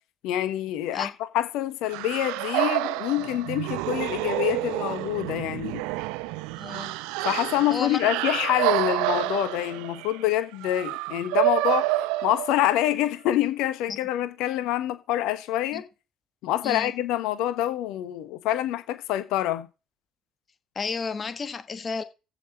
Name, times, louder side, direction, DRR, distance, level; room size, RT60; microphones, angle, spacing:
voice 1, 0.2-5.8 7.2-11.9 12.2-15.8 16.4-19.7, left 13 dB, 60° left, 1.3 m, -26 dB
sound 1, 1.9-13.0, right 18 dB, 65° right, 0.6 m, -28 dB
voice 2, 6.5-6.9 7.7-8.0 13.9-14.0 15.7-15.8 16.6-16.9 20.7-22.0, left 5 dB, 35° left, 1.5 m, -32 dB
15.0 x 6.2 x 4.2 m
figure-of-eight pair, 55°, 0 cm